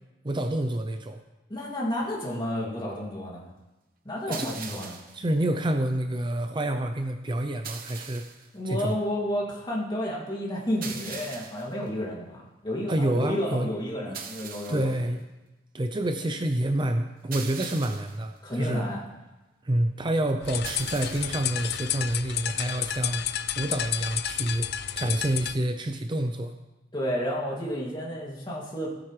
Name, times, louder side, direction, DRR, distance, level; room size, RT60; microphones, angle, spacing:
voice 1, 0.2-1.2 4.3-4.5 5.1-8.3 8.7-8.9 12.9-13.7 14.1-14.2 14.7-15.2 15.7-18.9 19.6-23.2 23.6-24.7 25.0-26.5, right 1 dB, 25° right, 6 dB, 0.6 m, -28 dB
voice 2, 1.5-3.5 4.0-5.0 8.5-15.1 18.4-19.0 26.9-28.9, equal, 25° left, -4 dB, 2.6 m, -31 dB
sound 1, 4.3-5.2 7.6-8.5 10.8-11.7 14.1-15.0 17.3-18.2 20.6-21.5, right 6 dB, 55° right, 1.1 m, -40 dB
sound 2, 20.4-25.6, left 10 dB, 60° left, 0.5 m, -31 dB
17.5 x 8.8 x 3.3 m, 1.1 s
head